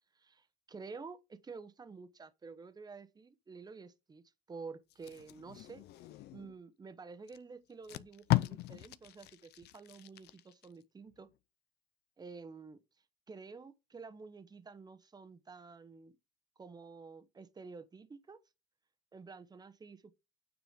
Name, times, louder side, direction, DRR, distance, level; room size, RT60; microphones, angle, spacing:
voice 1, 0.2-4.2 4.5-5.8 6.3-11.3 12.2-12.8 13.3-16.2 16.6-18.4 19.1-20.1, right 4 dB, 25° right, 1.0 m, -50 dB
Packing tape duct tape, 4.9-6.6 7.3-7.4 7.7-10.7 11.1-11.3, left 17 dB, 75° left, 0.6 m, -37 dB
9.3 x 5.0 x 5.0 m
cardioid pair, 110°, 17 cm